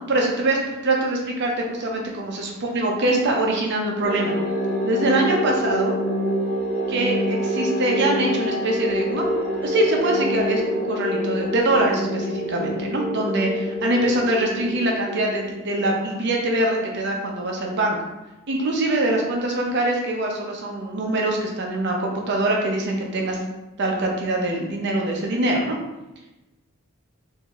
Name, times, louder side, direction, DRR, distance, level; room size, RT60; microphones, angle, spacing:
voice 1, 0.1-4.3 4.8-5.9 6.9-9.2 9.6-18.0 18.5-23.4 23.8-25.8, right 1 dB, 55° right, 0 dB, 0.6 m, -23 dB
sound 1, 4.0-15.8, equal, 40° left, 1.3 m, -26 dB
3.5 x 2.7 x 3.0 m, 0.99 s
head